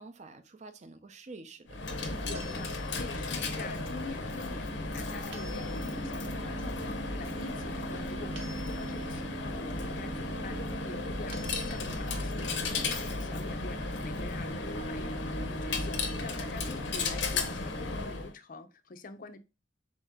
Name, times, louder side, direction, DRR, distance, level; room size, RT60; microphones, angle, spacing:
voice 1, 0.0-1.8 11.8-12.3 14.8-15.1, right 3 dB, 40° right, 0.5 m, -49 dB
Coin (dropping), 1.7-18.3, left 2 dB, 80° left, 0.7 m, -34 dB
voice 2, 2.1-10.6 10.8-19.4, left 3 dB, 50° left, 0.5 m, -46 dB
sound 1, 2.3-3.3 5.3-6.2 8.4-9.3 11.3-12.2, right 1 dB, 75° right, 0.8 m, -51 dB
4.1 x 2.8 x 3.5 m
head